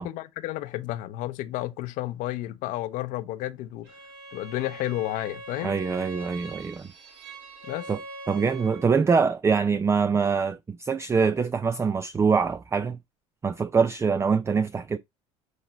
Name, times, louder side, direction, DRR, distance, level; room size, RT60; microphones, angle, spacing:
voice 1, 0.0-3.9 4.3-5.8 7.7-7.9, left 15 dB, 60° left, 0.8 m, -32 dB
Bowed string instrument, 3.8-9.0, right 2 dB, 75° right, 2.0 m, -42 dB
voice 2, 5.6-6.9 7.9-8.0 8.3-13.0 13.4-15.0, right 5 dB, 20° right, 0.4 m, -24 dB
8.1 x 3.0 x 4.1 m
hypercardioid pair, 75°, 15 cm